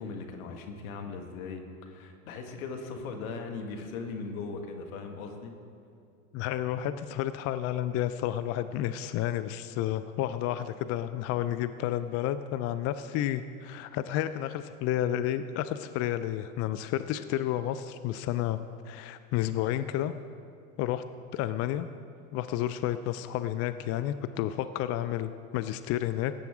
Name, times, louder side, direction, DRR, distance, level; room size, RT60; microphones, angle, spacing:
voice 1, 0.0-5.5, left 4 dB, 75° left, 4 dB, 1.6 m, -39 dB
voice 2, 6.3-18.6 18.9-20.1 20.8-21.0 21.3-21.9 22.3-26.3, left 12 dB, 35° left, 12 dB, 0.4 m, -31 dB
18.0 x 8.3 x 3.6 m, 2.4 s
hypercardioid pair, 90°, 43 cm